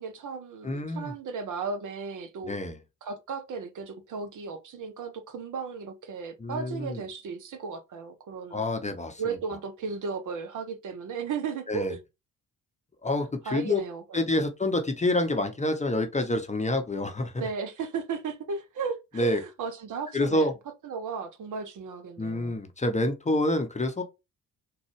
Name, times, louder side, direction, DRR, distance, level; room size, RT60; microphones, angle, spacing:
voice 1, 0.0-2.5 3.0-8.6 9.2-12.0 13.5-14.4 17.4-20.5 20.8-22.5, right 5 dB, 50° right, 0.7 m, -35 dB
voice 2, 0.6-1.1 2.4-2.8 6.4-7.0 8.5-9.4 11.7-11.9 13.0-13.8 14.1-17.5 19.1-19.4 20.1-20.5 22.2-24.0, left 1 dB, 15° left, 0.7 m, -27 dB
3.9 x 2.3 x 3.1 m
hypercardioid pair, 45°, 41 cm